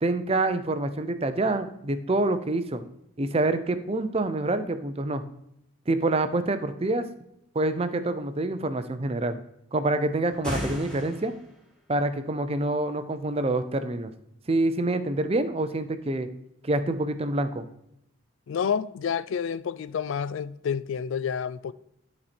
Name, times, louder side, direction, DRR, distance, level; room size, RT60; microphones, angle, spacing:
voice 1, 0.0-2.8 3.2-5.2 5.9-7.0 7.5-9.4 9.7-11.3 11.9-14.1 14.5-16.3 16.6-17.6, right 2 dB, 25° right, 0.5 m, -26 dB
sound 1, 10.3-11.6, left 1 dB, 5° left, 2.4 m, -34 dB
voice 2, 18.5-21.7, left 7 dB, 60° left, 0.3 m, -29 dB
11.5 x 4.3 x 4.3 m
head